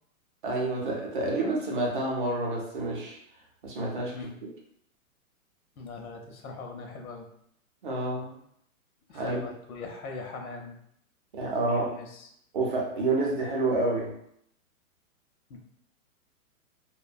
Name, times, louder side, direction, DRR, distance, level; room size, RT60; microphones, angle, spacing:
voice 1, 0.4-3.2 3.6-4.2 4.4-4.5 7.8-8.4 9.1-9.4 11.3-11.9 12.5-14.1, right 2 dB, 35° right, -1 dB, 0.6 m, -28 dB
voice 2, 5.8-7.3 9.1-10.8 11.7-12.3 15.5-15.6, left 3 dB, 80° left, 2 dB, 0.7 m, -41 dB
2.6 x 2.1 x 2.5 m, 0.72 s
hypercardioid pair, 165°, 42 cm